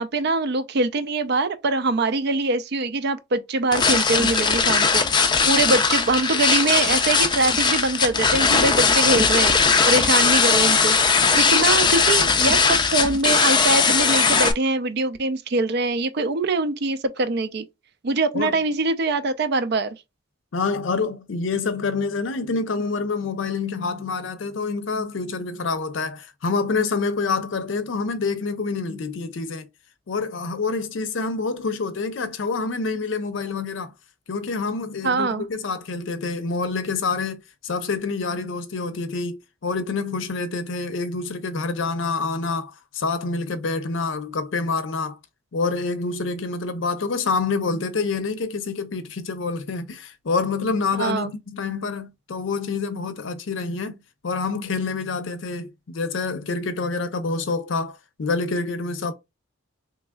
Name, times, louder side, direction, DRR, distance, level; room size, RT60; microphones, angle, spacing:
voice 1, 0.0-5.0 5.4-11.0 11.3-17.6 18.0-20.0 35.0-35.5 50.9-51.3, right 3 dB, 55° right, 0.5 m, -23 dB
sound 1, 3.7-14.5, left 5 dB, 25° left, 0.4 m, -19 dB
voice 2, 20.5-29.7 30.1-33.9 34.3-45.2 45.5-59.1, left 4 dB, 70° left, 0.6 m, -27 dB
3.5 x 3.1 x 2.2 m
head